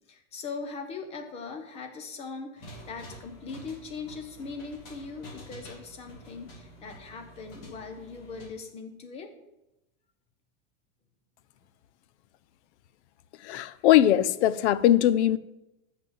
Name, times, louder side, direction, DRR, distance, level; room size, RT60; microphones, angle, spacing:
voice 1, 0.1-9.3, left 4 dB, 15° left, 6 dB, 0.7 m, -40 dB
sound 1, 2.6-8.5, equal, 40° left, 2.4 m, -48 dB
voice 2, 13.4-15.4, left 12 dB, 55° left, 17 dB, 0.6 m, -21 dB
7.4 x 6.2 x 7.3 m, 0.93 s
supercardioid pair, 175°, 40 cm